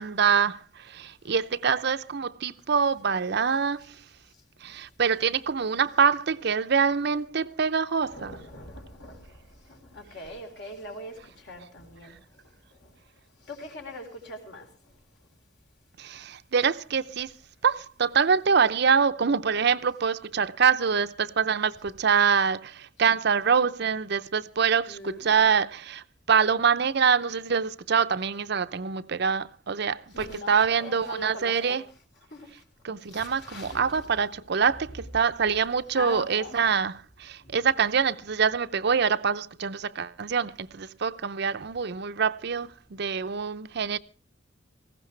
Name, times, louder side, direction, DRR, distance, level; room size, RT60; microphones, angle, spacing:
voice 1, 0.0-3.9 4.6-8.3 16.0-17.3 17.6-31.8 32.8-44.0, right 6 dB, 60° right, 0.6 m, -25 dB
voice 2, 8.0-9.3 9.7-12.1 13.5-14.7 24.8-25.4 30.1-31.8 32.3-32.5 33.1-34.2 35.9-36.6, left 1 dB, 65° left, 4.1 m, -41 dB
19.0 x 15.5 x 3.2 m
head